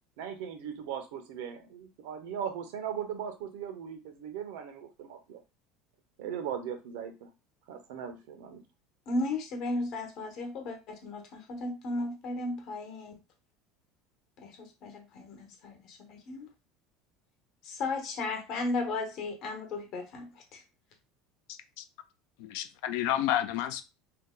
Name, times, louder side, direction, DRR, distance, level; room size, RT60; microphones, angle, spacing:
voice 1, 0.2-5.4 6.2-7.3 7.7-8.6, right 8 dB, 80° right, 6 dB, 0.7 m, -38 dB
voice 2, 9.1-13.2 14.4-16.5 17.6-20.6, left 2 dB, 50° left, 3 dB, 1.0 m, -35 dB
voice 3, 21.5-21.8 22.4-23.8, left 12 dB, 70° left, 9 dB, 0.4 m, -31 dB
2.8 x 2.1 x 3.7 m, 0.27 s
supercardioid pair, 135°, 0 cm